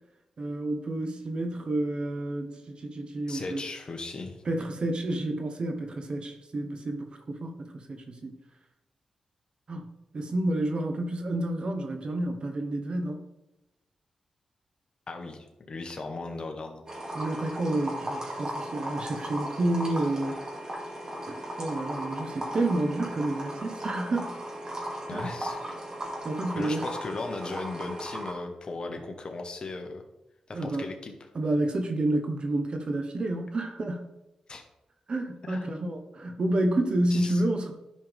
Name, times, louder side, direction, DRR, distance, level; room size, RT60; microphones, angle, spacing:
voice 1, 0.4-3.6 4.4-8.3 9.7-9.9 10.1-13.2 17.1-20.5 21.3-24.4 25.1-25.3 26.2-26.9 30.5-30.9 31.3-34.1 35.1-37.7, right 1 dB, 50° right, 5 dB, 1.1 m, -30 dB
voice 2, 3.3-4.4 15.1-16.8 25.1-25.6 26.5-30.0 30.5-31.1 34.5-34.6 35.4-35.7 37.1-37.4, left 3 dB, 45° left, 4 dB, 1.4 m, -37 dB
sound 1, 16.9-28.3, equal, 30° right, 2.6 m, -36 dB
11.0 x 5.4 x 3.6 m, 0.92 s
cardioid pair, 65°, 2 cm